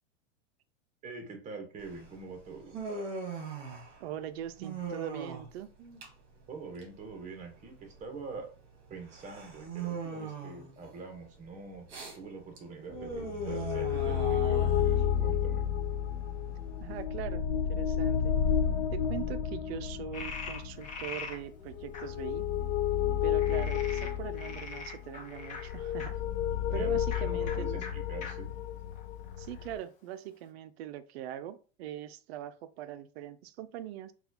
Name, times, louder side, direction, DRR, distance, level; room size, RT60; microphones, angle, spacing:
voice 1, 1.0-2.7 6.5-8.5 8.9-11.9 12.1-15.6 26.7-28.5, right 4 dB, 20° right, 0.9 m, -45 dB
Human voice, 1.8-17.0, right 4 dB, 35° right, 1.2 m, -41 dB
voice 2, 4.0-5.7 16.8-18.4 18.9-22.5 23.2-26.2 26.7-27.9 29.4-34.1, right 12 dB, 65° right, 0.4 m, -41 dB
sound 1, 13.0-29.8, left 9 dB, 75° left, 0.5 m, -31 dB
Frog, 20.1-21.4 21.9-22.0 23.3-26.1 27.0-27.2 27.5-27.6 27.8-27.9 28.2-28.3 28.9-29.7, left 4 dB, 20° left, 0.6 m, -42 dB
4.1 x 2.3 x 2.7 m
supercardioid pair, 145°, 34 cm